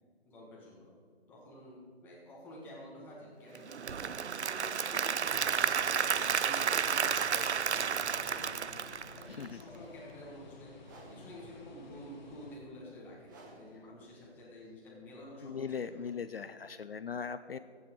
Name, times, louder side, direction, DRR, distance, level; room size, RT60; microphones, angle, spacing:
voice 1, 0.2-0.9 1.3-7.3 7.7-10.7 11.1-16.1, equal, 5° left, -5 dB, 1.5 m, -50 dB
Applause / Crowd, 3.6-9.6, right 7 dB, 80° right, 0.6 m, -31 dB
sound 1, 5.8-12.6, left 3 dB, 45° left, 1.7 m, -53 dB
sound 2, 5.8-15.7, right 2 dB, 20° right, 1.2 m, -58 dB
voice 2, 15.4-17.6, left 6 dB, 60° left, 11 dB, 0.5 m, -39 dB
15.0 x 8.7 x 4.6 m, 2.2 s
figure-of-eight pair, 155°, 33 cm